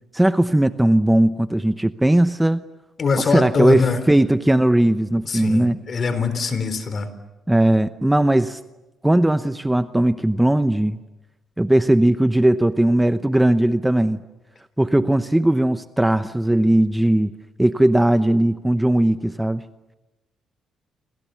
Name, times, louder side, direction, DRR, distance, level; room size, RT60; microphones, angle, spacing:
voice 1, 0.1-2.6 3.2-5.8 7.5-8.6 9.0-11.0 11.6-14.2 14.8-17.3 17.6-19.6, right 1 dB, 10° right, 11 dB, 0.8 m, -18 dB
voice 2, 3.0-4.0 5.3-7.1, left 4 dB, 45° left, 11 dB, 3.8 m, -22 dB
29.0 x 26.0 x 7.0 m, 1.1 s
cardioid pair, 90°, 0 cm